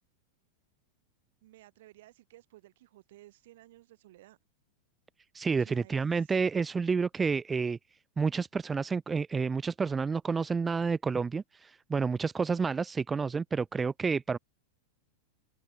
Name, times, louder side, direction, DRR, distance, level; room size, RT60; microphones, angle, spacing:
voice 1, 1.4-4.4 5.6-6.3, right 16 dB, 55° right, 6.7 m, -56 dB
voice 2, 5.3-7.8 8.2-14.4, right 5 dB, 15° right, 1.3 m, -29 dB
figure-of-eight pair, 90°, 0 cm